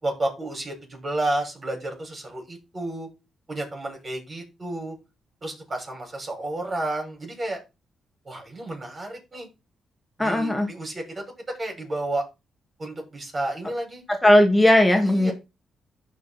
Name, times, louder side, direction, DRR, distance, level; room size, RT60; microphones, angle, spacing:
voice 1, 0.0-3.1 3.5-4.9 5.4-7.6 8.2-9.5 10.2-11.2 11.6-12.2 12.8-14.0 15.0-15.3, right 2 dB, 35° right, 6.4 m, -31 dB
voice 2, 10.2-10.7 14.2-15.3, left 1 dB, 15° left, 2.1 m, -17 dB
13.0 x 5.3 x 4.3 m
cardioid pair, 65°, 0 cm